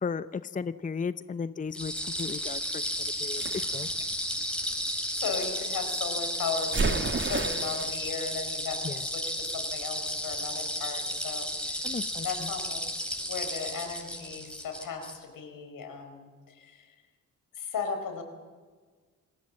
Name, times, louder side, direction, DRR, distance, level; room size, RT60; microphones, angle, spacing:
voice 1, 0.0-1.9 2.2-3.9 8.8-9.0 11.8-12.3, left 5 dB, 25° left, 14 dB, 0.6 m, -35 dB
sound 1, 1.7-15.2, equal, 5° left, 5.9 m, -33 dB
sound 2, 3.4-5.3 6.7-8.0, right 4 dB, 35° right, 2.1 m, -32 dB
voice 2, 4.9-11.9 12.2-16.9 17.5-18.2, left 5 dB, 80° left, 6 dB, 4.5 m, -37 dB
27.0 x 18.5 x 7.6 m, 1.4 s
supercardioid pair, 55°, 33 cm